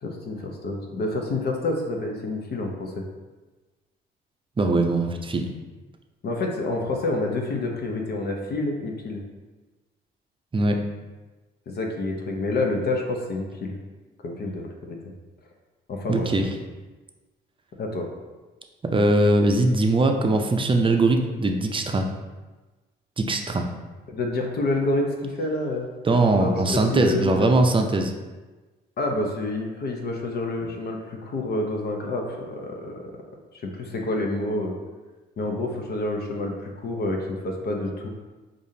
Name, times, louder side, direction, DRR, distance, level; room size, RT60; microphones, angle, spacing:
voice 1, 0.0-3.0 6.2-9.2 11.7-13.8 14.2-15.0 15.9-16.3 17.8-18.1 24.1-25.9 26.3-27.5 29.0-33.0 33.8-34.8 35.4-38.1, left 2 dB, 55° left, 1 dB, 0.7 m, -28 dB
voice 2, 4.6-5.5 10.5-10.8 16.1-16.5 18.8-22.1 23.2-23.7 26.0-28.1, right 2 dB, 25° right, 4 dB, 0.6 m, -21 dB
4.8 x 2.5 x 2.7 m, 1.2 s
supercardioid pair, 60°, 21 cm